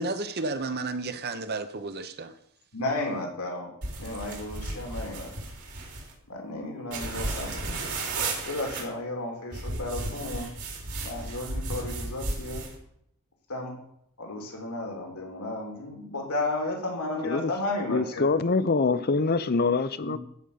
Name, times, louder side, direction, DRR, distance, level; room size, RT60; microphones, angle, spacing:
voice 1, 0.0-2.3, right 3 dB, 45° right, 0.9 m, -32 dB
voice 2, 2.7-3.7 4.0-5.3 6.3-7.8 8.5-10.5 11.0-12.6 13.5-13.8 14.2-18.3 20.0-20.2, left 2 dB, 85° left, 2.9 m, -33 dB
sound 1, 3.8-6.1 6.9-8.8 9.5-12.7, right 2 dB, 80° right, 4.0 m, -34 dB
voice 3, 17.9-20.2, left 4 dB, 45° left, 0.7 m, -24 dB
15.0 x 5.3 x 7.0 m
head